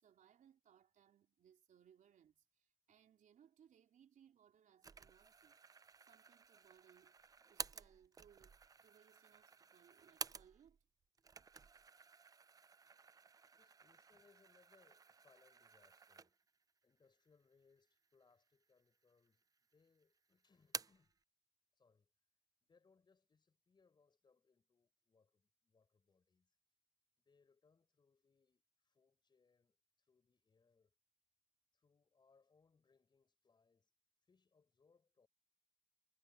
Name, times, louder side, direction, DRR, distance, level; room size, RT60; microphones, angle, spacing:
voice 1, 0.0-7.2 7.5-10.8, right 9 dB, 50° right, 3.5 m, -69 dB
sound 1, 4.8-10.8 11.1-16.6 17.0-17.1 18.0-18.6 18.9-19.7 20.0-21.1, right 5 dB, 20° right, 0.4 m, -53 dB
voice 2, 13.6-16.4 16.8-21.1 21.8-22.1 22.6-26.5 27.2-31.0 31.7-33.9 34.2-35.3, left 4 dB, 25° left, 4.9 m, -75 dB
cardioid pair, 110°, 17 cm